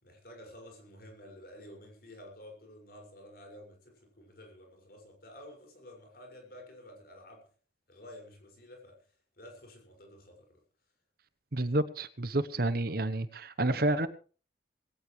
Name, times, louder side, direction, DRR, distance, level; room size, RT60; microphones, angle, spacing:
voice 1, 0.0-7.5 7.9-10.6, left 1 dB, 55° left, 6.2 m, -51 dB
voice 2, 11.5-14.1, right 1 dB, 55° right, 1.0 m, -29 dB
20.0 x 17.0 x 3.3 m
head